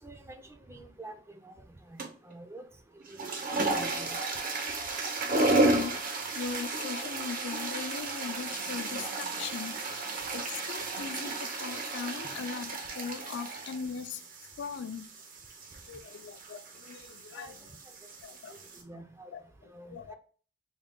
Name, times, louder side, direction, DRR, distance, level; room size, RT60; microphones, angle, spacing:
voice 1, 0.0-1.6 1.9-2.6 3.1-3.2 3.6-4.2 17.4-17.6 18.7-19.3 19.7-20.2, right 2 dB, 15° right, 6 dB, 0.4 m, -47 dB
sound 1, 2.0-2.3 3.0-18.8, right 2 dB, 50° right, 0.6 m, -33 dB
voice 2, 5.3-14.2 14.6-15.1 15.9-17.6 18.2-18.6 19.3-19.4 19.9-20.2, left 6 dB, 65° left, 10 dB, 0.4 m, -39 dB
3.6 x 2.2 x 3.5 m, 0.42 s
head